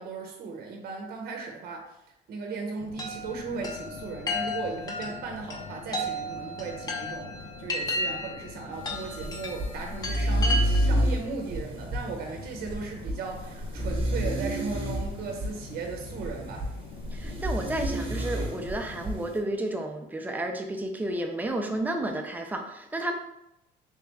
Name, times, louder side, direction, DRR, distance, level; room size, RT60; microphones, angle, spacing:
voice 1, 0.0-2.0 2.3-7.3 7.6-16.7, right 4 dB, 65° right, 2 dB, 0.7 m, -37 dB
sound 1, 2.8-19.3, left 4 dB, 60° left, 0.6 m, -45 dB
Chime, 3.0-11.1, left 1 dB, 25° left, 0.7 m, -34 dB
sound 2, 8.8-19.4, equal, 30° right, 1.0 m, -30 dB
voice 2, 17.1-23.1, right 1 dB, 10° right, 3 dB, 0.5 m, -31 dB
3.4 x 2.9 x 3.4 m, 0.83 s
cardioid pair, 110°, 17 cm